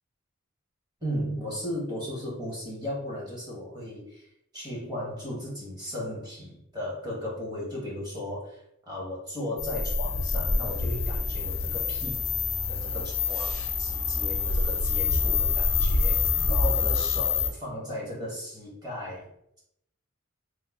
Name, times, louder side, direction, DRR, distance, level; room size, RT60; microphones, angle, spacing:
voice 1, 1.0-4.3 4.5-12.4 12.7-19.3, left 1 dB, 20° right, -5 dB, 1.2 m, -36 dB
sound 1, 9.6-17.5, left 4 dB, 75° left, 0.5 m, -26 dB
3.0 x 2.1 x 3.5 m, 0.75 s
head